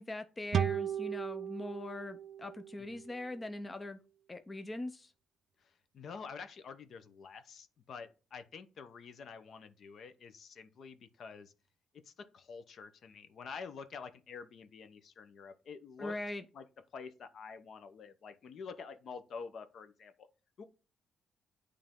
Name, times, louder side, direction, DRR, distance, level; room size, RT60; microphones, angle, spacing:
voice 1, 0.0-4.0 4.3-5.1 16.0-16.4, left 2 dB, 20° left, 0.5 m, -41 dB
sound 1, 0.5-3.9, right 8 dB, 55° right, 0.4 m, -37 dB
voice 2, 5.6-11.5 12.1-16.1 16.5-16.6 16.9-20.3 20.6-20.7, left 5 dB, 60° left, 0.8 m, -48 dB
8.9 x 3.3 x 3.7 m
cardioid pair, 90°, 0 cm